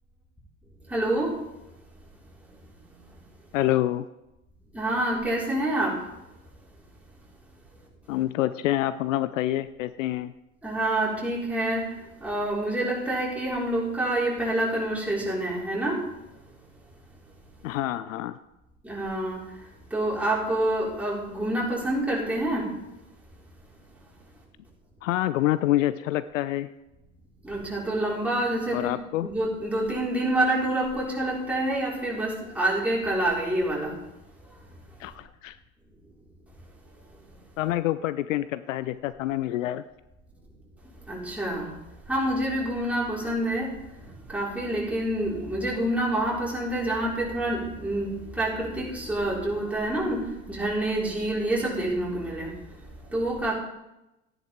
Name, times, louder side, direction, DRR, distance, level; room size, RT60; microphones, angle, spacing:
voice 1, 0.9-1.4 4.7-6.0 10.6-11.9 12.2-16.0 18.8-19.4 19.9-22.7 27.4-28.9 29.2-33.9 41.1-41.7 42.1-43.7 44.3-52.5 53.1-53.5, right 1 dB, 5° right, -6 dB, 5.0 m, -27 dB
voice 2, 3.5-4.1 8.1-10.3 17.6-18.4 25.0-26.7 28.7-29.3 35.0-35.6 37.6-39.8, left 14 dB, 65° left, 15 dB, 0.5 m, -27 dB
14.0 x 10.5 x 3.7 m, 0.94 s
figure-of-eight pair, 75°, 41 cm